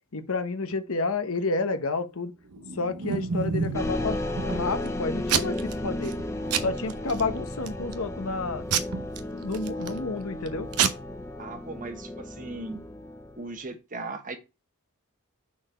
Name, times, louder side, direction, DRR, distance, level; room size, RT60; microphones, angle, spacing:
voice 1, 0.1-2.3 2.7-6.2 6.6-8.7 9.3-10.7, left 3 dB, 65° left, 1.0 m, -30 dB
Packing tape duct tape / Tearing, 2.5-3.9 4.4-4.9 5.3-5.7 6.0-6.2 6.5-7.2 7.7-8.0 8.7-10.0 10.5-10.6 10.7-10.9, right 7 dB, 85° right, 0.8 m, -28 dB
sound 1, 3.7-13.5, left 1 dB, 15° left, 0.8 m, -34 dB
voice 2, 11.4-12.8 13.4-14.4, right 3 dB, 35° right, 1.1 m, -38 dB
6.0 x 4.3 x 4.3 m
head